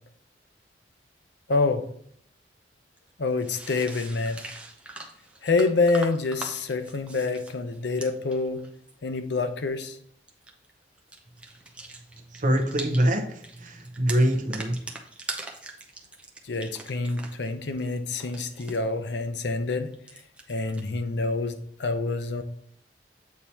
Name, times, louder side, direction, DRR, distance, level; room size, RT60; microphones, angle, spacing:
voice 1, 1.5-1.8 3.2-4.4 5.4-8.6 9.0-10.0 16.4-19.9 20.5-22.4, left 3 dB, 70° left, 9 dB, 0.6 m, -27 dB
sound 1, 3.0-3.1 3.4-8.9 10.3-10.7 11.0-13.2 13.4-17.5 17.8-18.8 19.9-20.8, right 2 dB, 5° right, 0.6 m, -42 dB
voice 2, 12.3-14.8, equal, 45° right, 5 dB, 0.7 m, -24 dB
8.3 x 2.8 x 4.3 m, 0.66 s
head